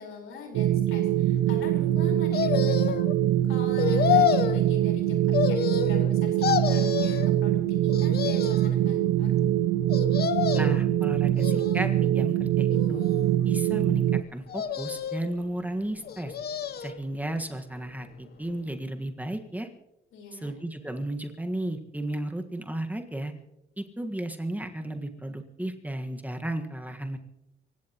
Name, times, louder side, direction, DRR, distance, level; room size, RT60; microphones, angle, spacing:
voice 1, 0.0-3.0 3.4-9.3 20.1-20.5, left 4 dB, 80° left, 1 dB, 4.6 m, -43 dB
sound 1, 0.5-14.2, right 12 dB, 85° right, 0.5 m, -24 dB
sound 2, 2.3-3.1 3.8-4.6 5.3-6.1 6.4-7.3 7.9-8.7 9.9-10.8 11.4-12.1 12.7-13.5 14.5-15.3 16.0-17.0 17.4-17.5, left 9 dB, 50° left, 1.0 m, -28 dB
voice 2, 10.5-13.1 13.4-16.3 16.8-19.7 20.3-23.3 23.8-27.2, right 1 dB, 10° right, 4 dB, 1.6 m, -34 dB
26.5 x 16.0 x 3.0 m, 0.87 s
cardioid pair, 90°, 20 cm